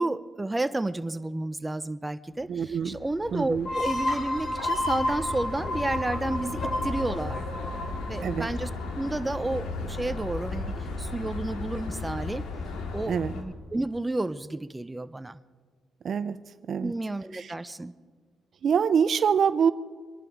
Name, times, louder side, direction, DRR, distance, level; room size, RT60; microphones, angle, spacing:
voice 1, 0.0-7.4 7.7-8.7 9.0-12.4 12.9-15.4 16.8-17.9, right 2 dB, 15° right, 12 dB, 0.6 m, -31 dB
sound 1, 2.4-13.4, left 3 dB, 85° left, 2.1 m, -36 dB
voice 2, 2.5-3.0 3.3-3.7 8.2-8.5 13.1-13.3 16.0-16.4 16.7-16.9 17.3-17.5 18.6-19.7, right 7 dB, 55° right, 14 dB, 0.5 m, -25 dB
sound 2, 3.6-9.1, left 1 dB, 60° left, 4.2 m, -31 dB
25.5 x 11.0 x 5.1 m, 1.5 s
cardioid pair, 90°, 0 cm